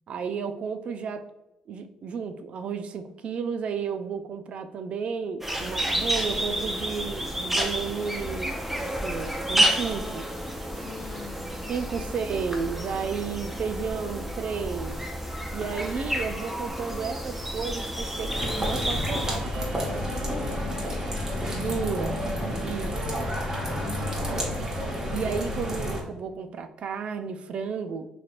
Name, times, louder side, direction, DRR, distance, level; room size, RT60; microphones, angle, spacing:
voice 1, 0.1-1.3 1.7-10.3 11.7-15.0 15.5-19.4 21.5-22.2 22.6-22.9 24.9-28.1, right 6 dB, 60° right, 9 dB, 0.3 m, -32 dB
sound 1, 5.4-19.4, equal, 10° right, 0.6 m, -30 dB
voice 2, 10.7-11.8 19.8-21.8 22.2-22.9 23.3-24.4, left 4 dB, 55° left, 4 dB, 0.6 m, -43 dB
sound 2, 18.3-26.0, equal, 25° right, 1.0 m, -30 dB
3.2 x 2.9 x 2.4 m, 0.93 s
cardioid pair, 80°, 2 cm